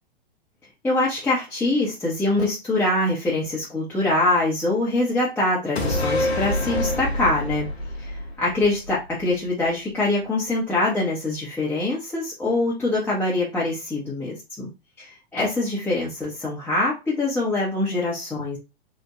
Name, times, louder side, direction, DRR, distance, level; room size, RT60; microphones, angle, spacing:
voice 1, 0.8-7.7 8.0-14.7 15.0-18.6, left 2 dB, 5° left, -7 dB, 0.6 m, -24 dB
sound 1, 5.8-9.3 9.7-9.8, left 1 dB, 85° left, 0.6 m, -26 dB
2.9 x 2.2 x 2.2 m, 0.26 s
figure-of-eight pair, 105°, 31 cm